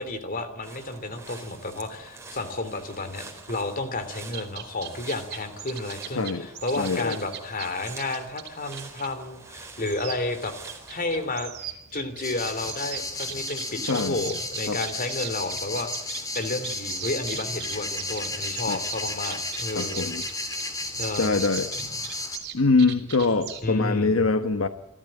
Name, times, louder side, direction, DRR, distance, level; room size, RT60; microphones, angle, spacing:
voice 1, 0.0-10.5 10.9-11.5 11.9-20.1 20.5-20.6 21.0-21.4 23.6-24.2, left 2 dB, 45° left, 10 dB, 3.1 m, -31 dB
sound 1, 0.6-11.3, right 3 dB, 15° right, 4.3 m, -46 dB
sound 2, 4.3-23.6, right 9 dB, 55° right, 3.3 m, -40 dB
voice 2, 6.1-6.5 6.8-7.2 13.8-14.2 14.7-14.8 18.7-18.8 19.7-20.2 21.2-21.7 22.5-24.7, left 3 dB, 80° left, 9 dB, 1.2 m, -23 dB
sound 3, 12.2-22.4, left 2 dB, 15° left, 3.0 m, -33 dB
28.5 x 13.0 x 9.0 m, 0.88 s
head